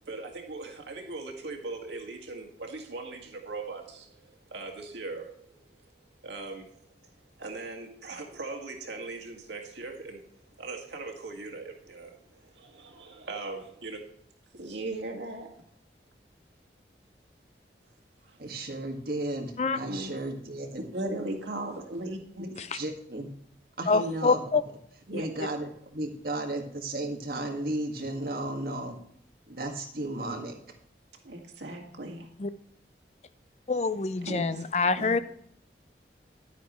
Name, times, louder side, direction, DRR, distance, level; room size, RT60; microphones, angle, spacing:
voice 1, 0.0-5.6 6.2-6.7 7.4-10.3 10.6-14.0 14.5-15.5 18.3-18.4 19.9-20.2 20.9-22.5 25.1-25.3 31.2-32.3 34.2-34.6 34.9-35.2, right 2 dB, 85° right, 1.9 m, -39 dB
voice 2, 18.4-20.8 21.9-22.0 22.7-23.3 23.8-24.4 25.2-29.0 29.5-30.8, right 1 dB, 55° right, 1.7 m, -34 dB
voice 3, 23.9-24.6 32.4-32.5 33.7-35.2, left 4 dB, 35° left, 0.4 m, -25 dB
10.5 x 9.3 x 3.1 m
head